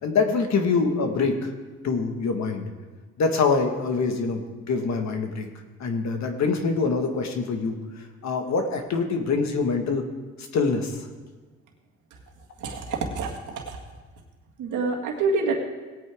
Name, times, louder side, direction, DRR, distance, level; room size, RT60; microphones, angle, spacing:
voice 1, 0.0-1.5 1.8-2.7 3.2-4.4 4.7-5.5 5.8-10.0 10.4-11.0, left 4 dB, 65° left, 5 dB, 1.6 m, -25 dB
voice 2, 12.6-13.8 14.6-15.5, right 4 dB, 80° right, 0 dB, 1.9 m, -27 dB
18.0 x 8.8 x 3.6 m, 1.3 s
cardioid pair, 90°, 30 cm